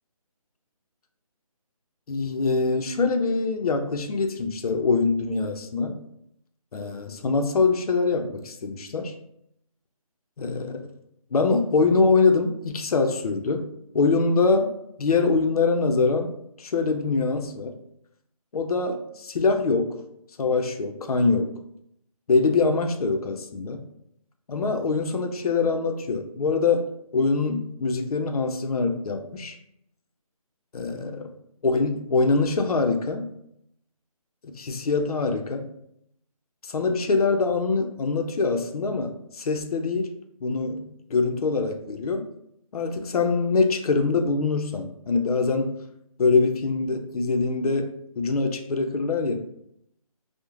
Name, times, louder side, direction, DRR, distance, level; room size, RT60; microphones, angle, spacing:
voice 1, 2.1-6.0 6.7-9.1 10.4-10.8 11.3-13.7 13.9-14.7 15.0-16.3 16.6-17.7 18.5-20.0 20.4-21.5 22.3-23.8 24.5-29.6 30.7-31.2 31.6-33.3 34.4-35.7 36.6-40.1 40.4-42.3 42.7-45.7 46.2-47.9 48.2-49.4, left 4 dB, 75° left, 5 dB, 0.4 m, -24 dB
2.4 x 2.0 x 3.0 m, 0.75 s
hypercardioid pair, 175°, 19 cm